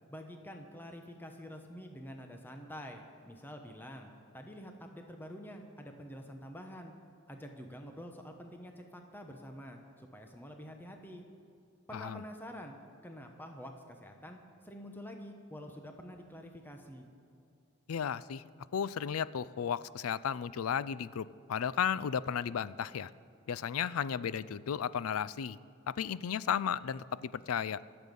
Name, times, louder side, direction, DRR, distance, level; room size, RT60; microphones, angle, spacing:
voice 1, 0.1-6.9 7.3-11.2 11.9-12.7 13.0-17.1, equal, 10° left, 4 dB, 1.0 m, -47 dB
voice 2, 11.9-12.2 17.9-23.1 23.5-25.6 25.9-27.8, left 8 dB, 85° left, 19 dB, 0.4 m, -34 dB
24.0 x 8.1 x 5.3 m, 2.6 s
head